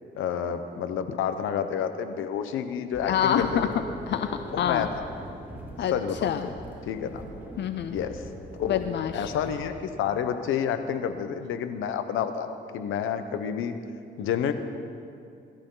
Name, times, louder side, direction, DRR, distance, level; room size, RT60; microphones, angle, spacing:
voice 1, 0.2-3.8 4.5-5.0 5.9-6.3 6.9-7.2 7.9-8.3 8.6-8.8 9.1-13.7 14.2-14.5, left 8 dB, 85° left, 9 dB, 1.0 m, -29 dB
sound 1, 2.9-9.6, right 1 dB, 10° right, 2.7 m, -41 dB
voice 2, 3.0-3.7 4.1-4.9 5.8-5.9 6.2-6.5 7.6-7.9 8.7-9.3, left 9 dB, 60° left, 9 dB, 0.6 m, -26 dB
21.5 x 13.5 x 3.9 m, 2.5 s
cardioid pair, 90°, 20 cm